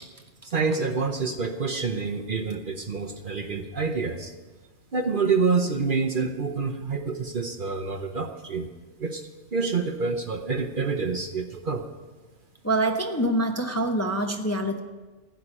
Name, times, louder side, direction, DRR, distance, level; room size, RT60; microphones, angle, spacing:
voice 1, 0.4-4.3 4.9-8.7 9.0-9.2 9.5-11.8, right 4 dB, 45° right, 4 dB, 0.9 m, -27 dB
voice 2, 12.6-14.8, right 1 dB, 15° left, 3 dB, 0.8 m, -25 dB
15.5 x 6.0 x 9.9 m, 1.3 s
omnidirectional pair, 1.3 m